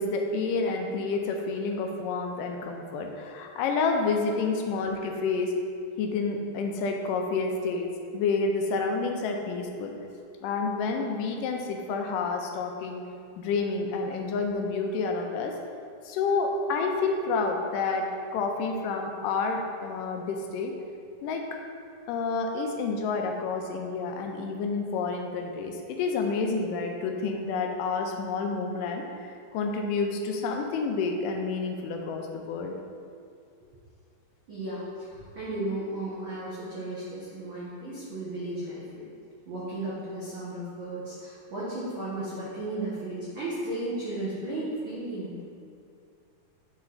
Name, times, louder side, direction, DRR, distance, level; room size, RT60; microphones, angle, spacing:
voice 1, 0.0-5.5 6.0-7.9 8.1-10.0 10.4-13.0 13.4-15.6 16.1-18.1 18.3-20.7 21.2-21.6 22.1-29.0 29.5-32.8, left 4 dB, 80° left, 2 dB, 2.1 m, -29 dB
voice 2, 34.5-39.0 39.5-45.4, right 1 dB, 80° right, -8 dB, 1.1 m, -34 dB
9.0 x 3.2 x 4.0 m, 2.4 s
omnidirectional pair, 3.9 m